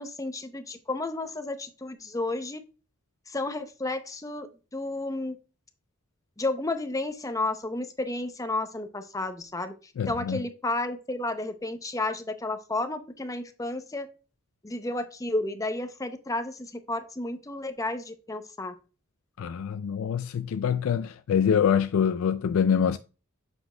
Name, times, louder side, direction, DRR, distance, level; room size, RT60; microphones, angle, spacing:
voice 1, 0.0-2.6 3.3-4.5 4.7-5.4 6.4-9.7 10.1-14.1 14.6-18.7, left 2 dB, 15° left, 0.6 m, -32 dB
voice 2, 10.0-10.4 19.4-23.0, left 7 dB, 75° left, 0.3 m, -25 dB
7.8 x 6.1 x 2.2 m
head